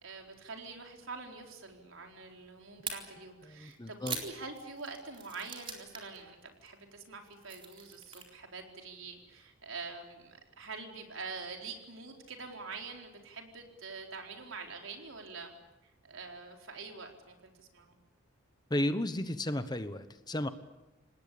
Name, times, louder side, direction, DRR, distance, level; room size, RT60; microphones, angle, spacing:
voice 1, 0.0-15.5 16.0-17.9, right 4 dB, 85° right, 2 dB, 4.4 m, -45 dB
sound 1, 2.8-3.0 3.7-6.2 6.4-6.7 7.1-8.3, right 6 dB, 25° right, 4.0 m, -41 dB
voice 2, 3.4-4.2 18.7-20.5, left 1 dB, 20° left, 11 dB, 1.1 m, -33 dB
27.5 x 19.5 x 8.6 m, 1.1 s
head